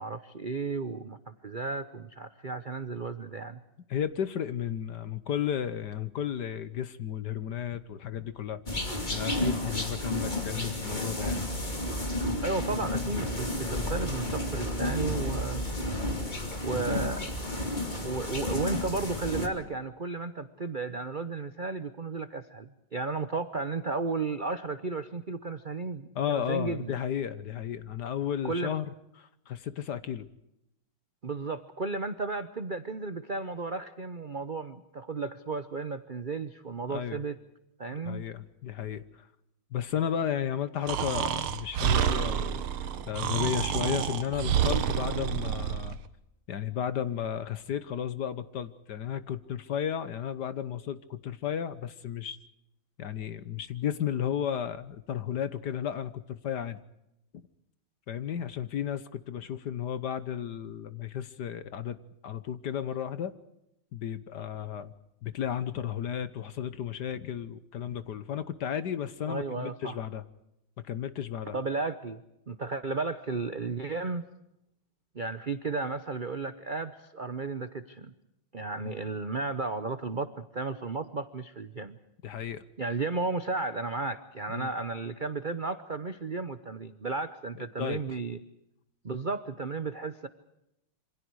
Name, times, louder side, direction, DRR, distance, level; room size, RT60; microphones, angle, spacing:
voice 1, 0.0-3.6 12.4-15.6 16.6-17.3 18.0-26.9 28.4-28.7 31.2-37.4 37.8-38.2 69.3-70.0 71.5-74.2 75.1-78.1 78.5-82.0 82.8-88.4 89.0-90.3, right 3 dB, 60° right, 11 dB, 0.5 m, -34 dB
voice 2, 3.9-11.4 26.1-28.8 29.2-30.3 36.9-37.2 37.9-39.3 39.7-42.6 43.1-46.0 46.5-52.4 53.0-56.8 58.1-62.0 62.2-63.3 63.9-64.9 65.2-70.2 70.9-71.5 78.8-79.0 82.2-82.6 84.5-84.7 87.5-88.0, left 9 dB, 55° left, 13 dB, 1.5 m, -33 dB
sound 1, 8.7-19.5, left 1 dB, 20° left, 2.8 m, -31 dB
Breathing, 40.9-46.0, right 9 dB, 85° right, 2.0 m, -29 dB
27.0 x 25.5 x 4.8 m, 0.84 s
omnidirectional pair, 2.3 m